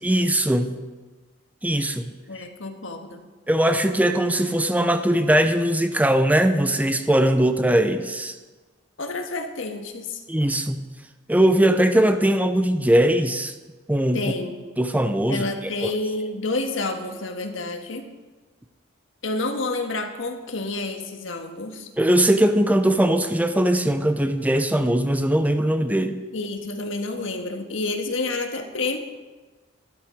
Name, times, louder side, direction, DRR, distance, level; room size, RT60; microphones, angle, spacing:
voice 1, 0.0-0.8 1.6-2.1 3.5-8.3 10.3-10.8 11.3-13.5 13.9-14.2 14.8-15.5 15.8-15.9 22.0-26.2, right 1 dB, 10° right, 9 dB, 0.6 m, -20 dB
voice 2, 2.3-3.2 9.0-10.2 14.1-14.6 15.3-18.1 19.2-21.9 26.3-29.0, left 2 dB, 85° left, 5 dB, 1.6 m, -29 dB
12.5 x 12.0 x 5.2 m, 1.3 s
head